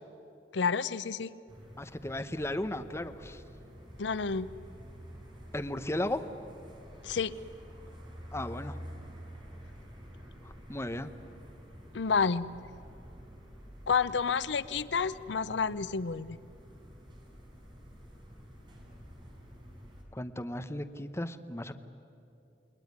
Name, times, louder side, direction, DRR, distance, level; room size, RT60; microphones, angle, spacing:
voice 1, 0.5-1.3 4.0-4.5 7.0-7.3 11.9-12.5 13.9-16.4, left 5 dB, 80° left, 16 dB, 0.6 m, -29 dB
sound 1, 1.5-20.0, equal, 25° right, 4.9 m, -49 dB
voice 2, 1.8-3.4 5.5-6.2 8.3-8.8 10.4-11.1 20.1-21.7, left 1 dB, 15° left, 8 dB, 1.0 m, -35 dB
29.0 x 21.0 x 9.7 m, 2.7 s
head